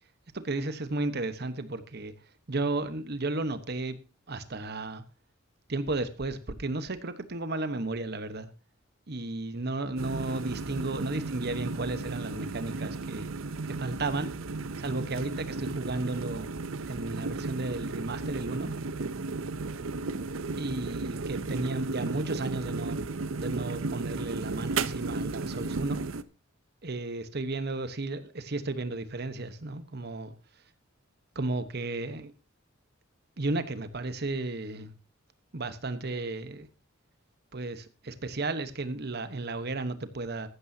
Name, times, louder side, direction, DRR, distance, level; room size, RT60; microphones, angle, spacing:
voice 1, 0.3-2.1 2.5-4.0 4.3-5.0 5.7-8.5 9.1-13.3 13.7-14.3 14.8-16.5 16.9-18.7 20.6-23.0 23.4-26.0 26.8-30.3 31.3-32.3 33.4-34.9 35.5-36.7 37.5-40.5, right 2 dB, 50° right, 1.1 m, -33 dB
sound 1, 10.0-26.2, right 3 dB, 70° right, 0.7 m, -34 dB
14.5 x 12.5 x 2.8 m
head